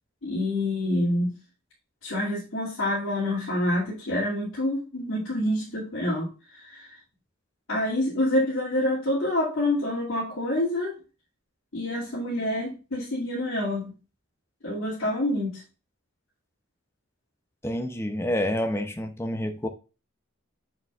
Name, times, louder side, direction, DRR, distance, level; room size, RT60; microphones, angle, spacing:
voice 1, 0.2-1.4 2.0-6.3 6.5-6.9 7.7-10.9 11.7-13.9 14.6-15.6, left 1 dB, 65° left, 2.6 m, -27 dB
voice 2, 17.6-19.7, left 1 dB, 10° left, 0.7 m, -28 dB
6.7 x 6.6 x 2.5 m
head